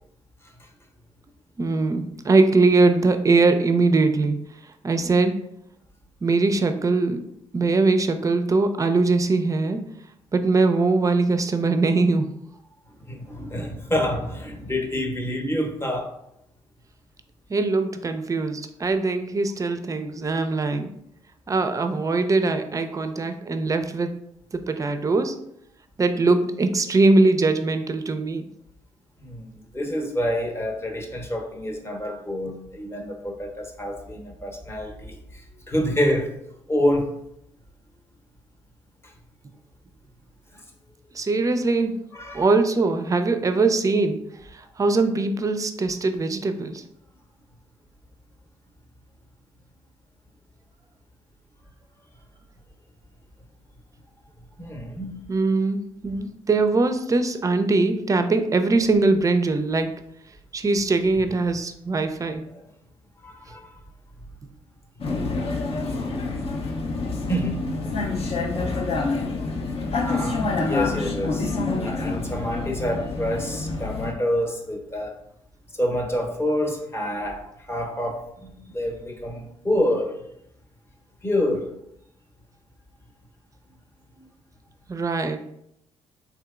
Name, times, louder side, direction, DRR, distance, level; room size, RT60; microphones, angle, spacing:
voice 1, 1.6-4.4 4.8-5.3 6.2-7.2 7.5-9.8 10.3-12.3 17.5-20.9 21.5-24.1 24.5-25.3 26.0-28.5 41.1-41.9 42.3-44.2 44.5-46.8 55.3-59.9 60.5-62.5 84.9-85.4, right 3 dB, 25° right, 8 dB, 0.4 m, -21 dB
voice 2, 13.1-16.1 29.2-29.5 29.7-36.3 36.7-37.1 42.1-42.5 54.6-55.1 63.2-63.8 67.3-67.6 70.0-75.2 75.8-80.2 81.2-81.7 84.2-84.3, equal, 20° left, 2 dB, 0.8 m, -27 dB
Vehicle, 65.0-74.1, left 3 dB, 50° left, 0.5 m, -27 dB
3.5 x 2.8 x 2.3 m, 0.76 s
hypercardioid pair, 50°, 13 cm